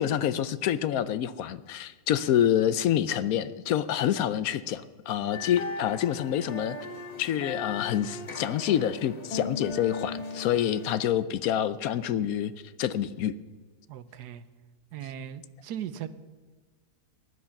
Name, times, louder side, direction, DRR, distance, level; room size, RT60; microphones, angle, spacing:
voice 1, 0.0-6.8 7.2-12.5 12.8-13.4, left 10 dB, 70° left, 15 dB, 1.0 m, -27 dB
sound 1, 5.3-11.0, left 3 dB, 30° left, 0.9 m, -38 dB
voice 2, 13.9-14.4 14.9-16.1, right 10 dB, 85° right, 14 dB, 1.3 m, -38 dB
15.5 x 11.0 x 5.8 m, 1.4 s
omnidirectional pair, 1.7 m